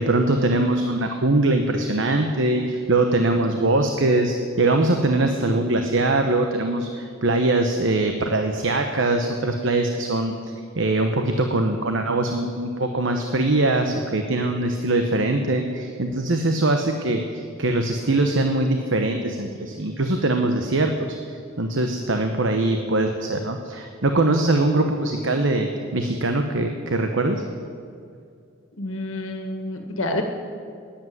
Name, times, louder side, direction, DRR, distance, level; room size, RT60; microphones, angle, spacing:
voice 1, 0.0-21.2 21.6-27.4, right 2 dB, 70° right, 5 dB, 1.0 m, -22 dB
voice 2, 28.7-30.2, left 2 dB, 85° left, 4 dB, 1.7 m, -28 dB
14.0 x 10.5 x 9.4 m, 2.3 s
head